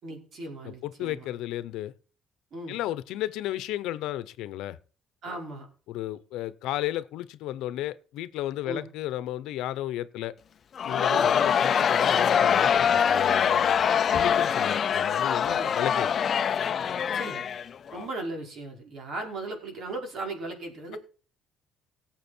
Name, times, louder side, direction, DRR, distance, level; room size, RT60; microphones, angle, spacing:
voice 1, 0.0-1.3 2.5-2.8 5.2-5.6 8.6-8.9 11.1-11.3 15.4-15.7 17.1-17.4 17.9-21.0, right 2 dB, 55° right, 5.0 m, -37 dB
voice 2, 0.6-1.9 2.7-4.8 5.9-10.3 10.8-13.8 14.1-16.1, left 14 dB, 80° left, 0.9 m, -33 dB
Crowd, 10.8-18.0, left 7 dB, 45° left, 0.6 m, -24 dB
18.0 x 7.6 x 4.5 m
cardioid pair, 115°, 0 cm